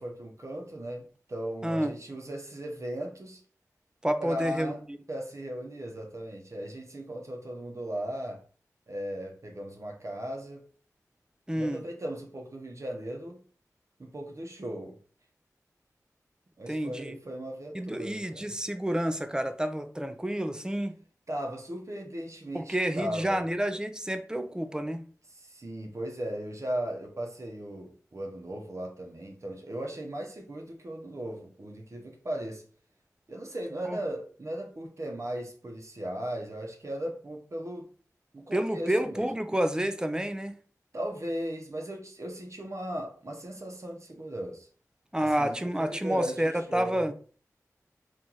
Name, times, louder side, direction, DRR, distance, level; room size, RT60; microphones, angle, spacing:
voice 1, 0.0-3.4 4.2-4.8 5.1-8.4 8.9-10.6 11.5-13.4 14.0-15.0 16.6-18.4 21.3-23.4 25.4-32.6 33.3-37.9 38.3-39.3 40.9-44.7 45.2-47.1, right 1 dB, 55° right, 0.9 m, -37 dB
voice 2, 1.6-1.9 4.0-5.0 11.5-11.8 16.7-17.2 17.7-21.0 22.5-25.0 33.8-34.0 38.5-40.6 45.1-47.1, right 1 dB, 10° right, 0.4 m, -29 dB
3.0 x 2.5 x 3.9 m
cardioid pair, 45°, 6 cm